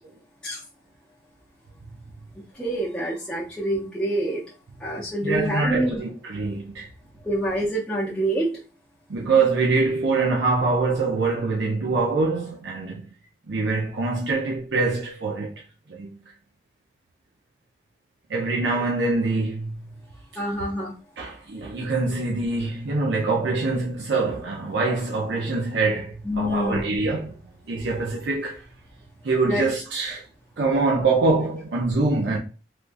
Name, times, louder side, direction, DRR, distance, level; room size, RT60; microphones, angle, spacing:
voice 1, 2.5-4.4 4.8-6.0 7.2-8.5 20.4-20.9 26.2-26.9 29.5-29.6, right 1 dB, 5° left, 0.5 m, -26 dB
voice 2, 5.2-6.9 9.1-13.0 13.5-15.5 15.9-16.1 18.3-20.0 21.2-27.4 27.7-28.6 29.2-30.2 30.6-32.4, right 3 dB, 80° right, 0.5 m, -24 dB
3.5 x 2.4 x 2.5 m
head